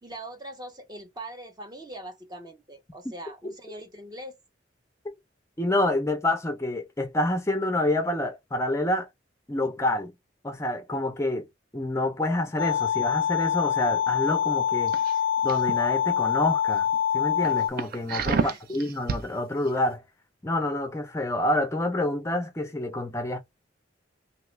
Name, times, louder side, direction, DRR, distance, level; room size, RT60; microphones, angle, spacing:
voice 1, 0.0-4.4 18.3-18.6, right 1 dB, 20° right, 0.7 m, -41 dB
voice 2, 5.6-9.1 9.5-10.1 10.4-11.5 11.7-14.9 15.4-16.9 17.1-20.0 20.4-23.4, left 1 dB, 15° left, 0.4 m, -27 dB
sound 1, 12.6-17.7, left 9 dB, 80° left, 0.3 m, -25 dB
sound 2, 14.9-15.7 16.2-16.5 16.9-17.0 17.4-19.2 19.6-19.8, right 5 dB, 50° right, 0.4 m, -30 dB
2.9 x 2.3 x 3.1 m
head